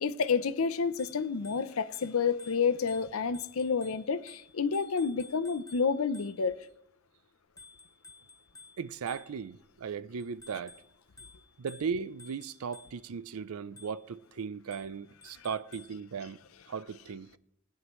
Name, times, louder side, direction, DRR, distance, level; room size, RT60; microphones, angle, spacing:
voice 1, 0.0-6.6, left 5 dB, 75° left, 0.6 m, -29 dB
Bicycle bell, 1.0-6.7 7.6-9.7 10.2-13.2 13.8-14.2 14.7-16.0, left 3 dB, 15° left, 1.3 m, -55 dB
voice 2, 8.8-10.8 11.6-16.4 16.7-17.3, right 6 dB, 80° right, 0.4 m, -37 dB
19.5 x 9.5 x 3.1 m
head